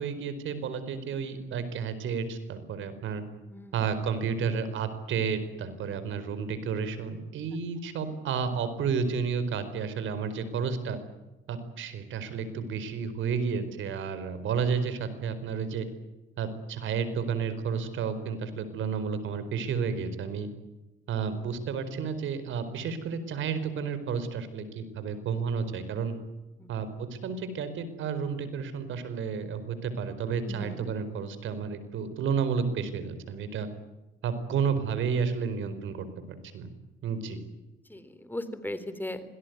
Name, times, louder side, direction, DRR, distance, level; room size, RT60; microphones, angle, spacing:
voice 1, 0.0-3.2 3.7-11.0 11.5-15.9 16.4-20.5 21.1-26.1 26.7-33.7 34.2-36.7 37.0-37.4, right 6 dB, 80° right, 11 dB, 4.6 m, -31 dB
voice 2, 30.5-30.8 37.9-39.2, left 1 dB, 10° left, 12 dB, 3.7 m, -37 dB
26.5 x 18.5 x 9.5 m, 1.0 s
cardioid pair, 90°, 20 cm